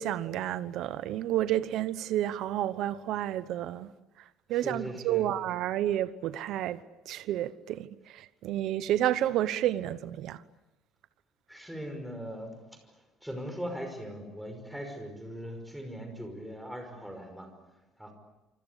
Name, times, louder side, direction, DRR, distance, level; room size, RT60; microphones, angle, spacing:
voice 1, 0.0-3.9 4.5-10.4, right 12 dB, 60° right, 1.0 m, -30 dB
voice 2, 4.6-5.3 11.5-12.6 13.2-17.5 18.0-18.1, equal, ahead, 5.5 m, -39 dB
27.5 x 26.0 x 8.3 m
cardioid pair, 165°, 0 cm